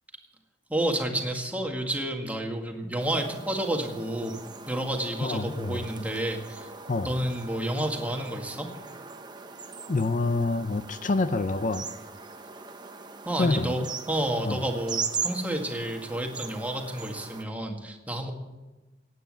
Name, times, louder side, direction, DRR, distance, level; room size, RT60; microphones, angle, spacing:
voice 1, 0.7-4.4 4.7-6.7 7.0-8.7 13.2-18.3, right 1 dB, 10° right, 2 dB, 1.9 m, -30 dB
sound 1, 3.0-17.4, right 5 dB, 25° right, 1.0 m, -39 dB
voice 2, 5.2-5.9 6.9-7.2 9.9-11.8 13.4-13.7 14.5-14.6, left 3 dB, 45° left, 11 dB, 0.6 m, -27 dB
16.0 x 9.4 x 7.7 m, 1.1 s
head